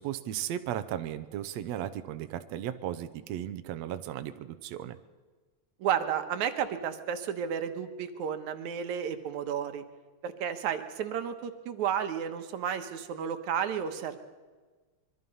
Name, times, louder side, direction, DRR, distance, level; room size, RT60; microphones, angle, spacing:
voice 1, 0.0-5.0, right 11 dB, 70° right, 10 dB, 1.9 m, -36 dB
voice 2, 5.8-9.8 10.2-14.2, right 8 dB, 85° right, 8 dB, 2.6 m, -32 dB
25.5 x 23.0 x 5.5 m, 1.3 s
omnidirectional pair, 3.3 m